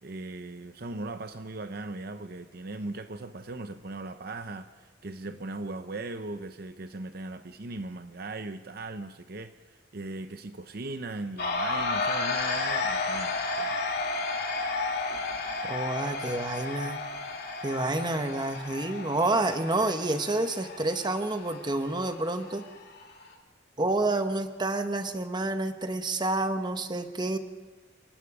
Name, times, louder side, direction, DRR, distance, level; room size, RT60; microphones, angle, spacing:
voice 1, 0.0-13.8, right 2 dB, 50° right, 9 dB, 0.7 m, -38 dB
sound 1, 11.4-23.3, left 3 dB, 55° left, 3.1 m, -32 dB
voice 2, 15.7-17.0 17.6-22.6 23.8-27.4, right 2 dB, 25° right, 8 dB, 1.1 m, -29 dB
28.5 x 18.0 x 5.0 m, 1.2 s
head